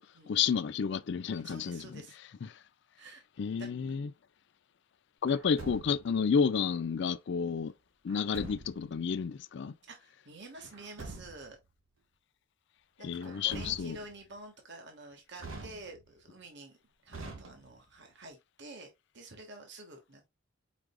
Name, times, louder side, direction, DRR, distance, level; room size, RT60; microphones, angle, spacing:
voice 1, 0.3-2.0 3.4-4.1 5.2-7.7 8.0-9.7 13.0-14.0, left 6 dB, 60° left, 0.4 m, -30 dB
voice 2, 1.3-2.1 3.0-3.2 3.6-3.7 9.9-11.6 13.0-16.8 17.0-20.3, right 2 dB, 60° right, 1.4 m, -49 dB
Truck, 5.3-6.2 8.1-8.9 10.6-11.6 13.2-14.2 15.4-16.2 17.1-18.0, right 2 dB, 85° right, 1.7 m, -45 dB
5.0 x 4.7 x 2.2 m
head